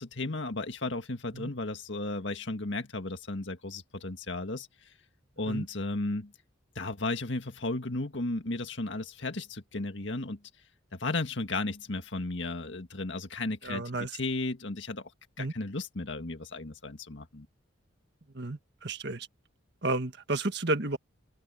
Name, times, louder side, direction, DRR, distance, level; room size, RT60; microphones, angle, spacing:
voice 1, 0.0-4.7 5.4-6.3 6.8-10.4 10.9-15.1 15.4-17.5, left 2 dB, 60° left, 1.9 m, -34 dB
voice 2, 13.6-14.2 15.4-15.5 18.3-19.3 19.8-21.0, right 2 dB, 55° right, 1.8 m, -32 dB
open air
head